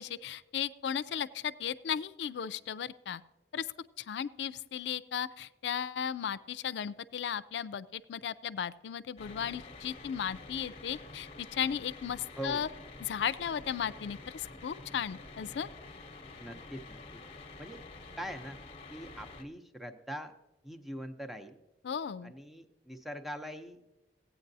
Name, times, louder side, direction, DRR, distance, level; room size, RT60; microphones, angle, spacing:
voice 1, 0.0-3.2 3.5-3.7 4.0-12.7 13.0-15.7 21.8-22.3, left 8 dB, 80° left, 16 dB, 0.4 m, -35 dB
sound 1, 9.2-19.4, left 3 dB, 35° left, 0.8 m, -48 dB
voice 2, 12.4-12.7 16.4-17.0 17.6-17.8 18.2-18.6 18.9-20.3 20.6-21.6 22.2-23.8, equal, ahead, 5 dB, 0.6 m, -42 dB
17.0 x 8.9 x 2.7 m, 0.97 s
head